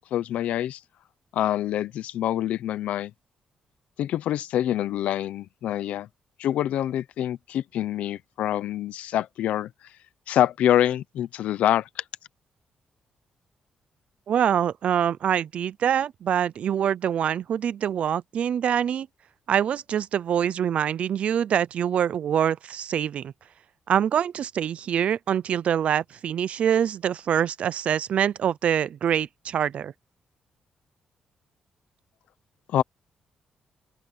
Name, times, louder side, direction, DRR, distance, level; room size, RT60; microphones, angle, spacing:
voice 1, 0.1-0.8 1.3-3.1 4.0-6.1 6.4-9.7 10.3-12.0 32.7-32.8, left 12 dB, 85° left, 0.9 m, -26 dB
voice 2, 14.3-19.1 19.5-23.3 23.9-29.9, right 9 dB, 65° right, 0.6 m, -25 dB
open air
cardioid pair, 85°, 2 cm